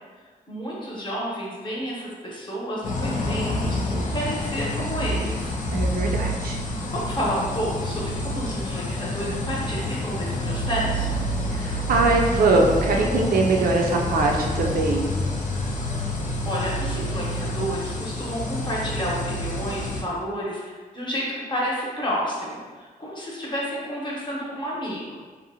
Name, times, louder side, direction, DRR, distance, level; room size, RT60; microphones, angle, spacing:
voice 1, 0.5-5.5 6.8-11.3 16.4-25.2, equal, 30° left, -5 dB, 0.8 m, -30 dB
sound 1, 2.8-20.0, left 1 dB, 55° left, 0.4 m, -28 dB
voice 2, 5.7-6.6 11.5-15.1, right 3 dB, 70° right, 0 dB, 0.4 m, -22 dB
2.7 x 2.0 x 2.7 m, 1.4 s
cardioid pair, 75°, 16 cm